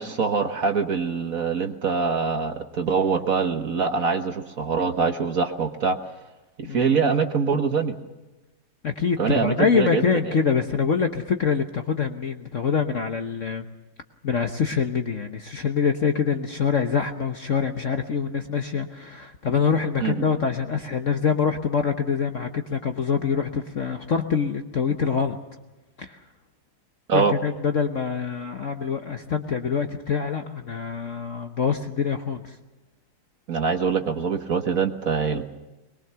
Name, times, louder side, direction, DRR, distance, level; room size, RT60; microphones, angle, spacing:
voice 1, 0.0-6.0 6.6-7.9 9.2-10.3 20.0-20.2 27.1-27.3 33.5-35.5, right 5 dB, 50° right, 6 dB, 1.4 m, -24 dB
voice 2, 8.8-13.7 14.2-25.4 26.0-26.2 27.1-32.5, left 6 dB, 50° left, 5 dB, 1.1 m, -25 dB
22.5 x 21.5 x 6.9 m, 1.1 s
omnidirectional pair, 2.3 m